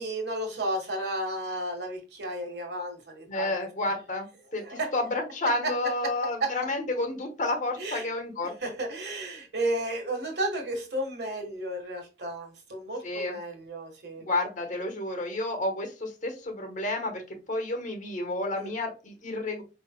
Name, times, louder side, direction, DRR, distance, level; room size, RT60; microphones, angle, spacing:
voice 1, 0.0-3.5 4.6-4.9 5.6-5.7 6.0-6.1 6.4-6.5 7.8-8.1 8.4-14.3 18.5-18.7, right 1 dB, 65° right, 2 dB, 1.5 m, -33 dB
voice 2, 3.3-4.2 4.5-8.5 13.0-13.3 14.3-17.2 17.5-19.6, left 2 dB, 45° left, 4 dB, 1.3 m, -30 dB
5.1 x 3.9 x 2.3 m, 0.31 s
head